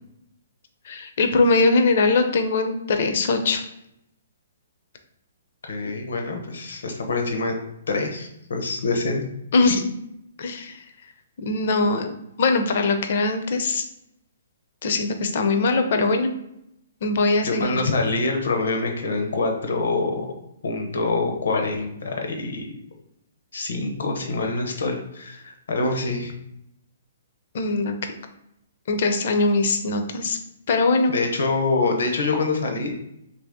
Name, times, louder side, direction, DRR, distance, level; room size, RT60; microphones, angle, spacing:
voice 1, 0.8-3.6 9.5-9.8 10.4-10.8 11.4-13.8 14.8-16.3 17.0-17.8 27.5-27.9 28.9-30.4 30.7-31.1, left 3 dB, 50° left, 6 dB, 0.5 m, -21 dB
voice 2, 5.6-7.6 7.9-9.2 17.4-20.3 20.6-22.7 23.5-26.3 31.1-32.9, left 3 dB, 80° left, 3 dB, 0.7 m, -25 dB
2.8 x 2.6 x 3.5 m, 0.80 s
hypercardioid pair, 165°, 0 cm